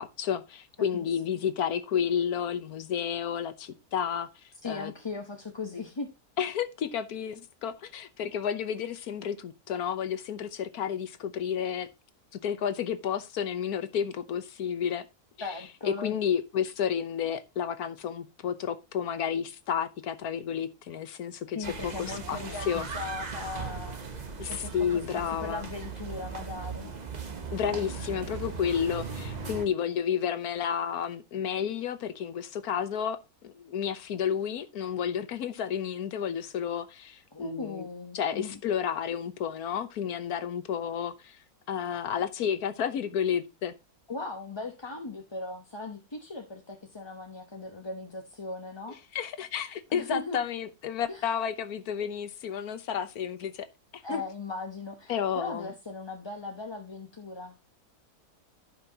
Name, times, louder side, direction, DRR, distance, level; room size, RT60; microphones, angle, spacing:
voice 1, 0.0-4.3 4.7-4.9 6.4-11.9 12.3-15.0 15.4-15.5 15.8-21.6 21.8-22.4 22.7-22.9 24.4-25.6 27.5-37.9 38.1-41.4 41.7-43.7 49.1-53.7 54.1-54.2 55.1-55.7, left 8 dB, 75° left, 1.4 m, -31 dB
voice 2, 4.6-6.1 15.4-16.1 21.5-25.0 25.3-26.9 37.3-38.6 44.1-49.0 49.9-50.4 51.1-51.3 54.0-57.5, left 3 dB, 20° left, 0.8 m, -38 dB
sound 1, 21.6-29.7, right 5 dB, 30° right, 1.0 m, -38 dB
15.0 x 5.8 x 2.9 m
omnidirectional pair, 1.6 m